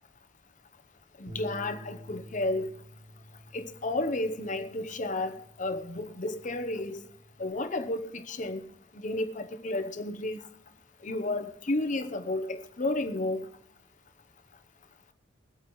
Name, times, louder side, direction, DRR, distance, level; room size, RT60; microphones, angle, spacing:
voice 1, 1.2-2.7 3.5-7.0 7.4-8.6 8.9-10.4 11.0-13.5, left 2 dB, 45° left, 0.9 m, -32 dB
Bass guitar, 1.3-7.5, right 1 dB, 40° right, 1.2 m, -50 dB
22.5 x 8.6 x 3.2 m
head